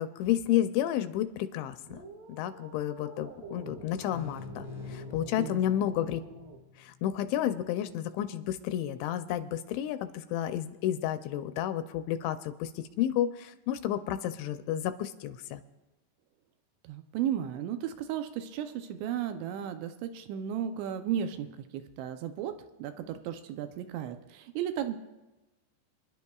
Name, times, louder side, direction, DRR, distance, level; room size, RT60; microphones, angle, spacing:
voice 1, 0.0-2.0 2.3-6.2 6.8-15.6, left 11 dB, 85° left, 10 dB, 2.7 m, -31 dB
sound 1, 1.8-6.6, right 2 dB, 60° right, 1.6 m, -47 dB
sound 2, 4.0-7.5, left 7 dB, 55° left, 1.4 m, -47 dB
voice 2, 16.8-22.5 22.8-25.0, right 10 dB, 80° right, 8 dB, 2.8 m, -34 dB
27.0 x 11.0 x 2.3 m, 1.1 s
omnidirectional pair, 5.4 m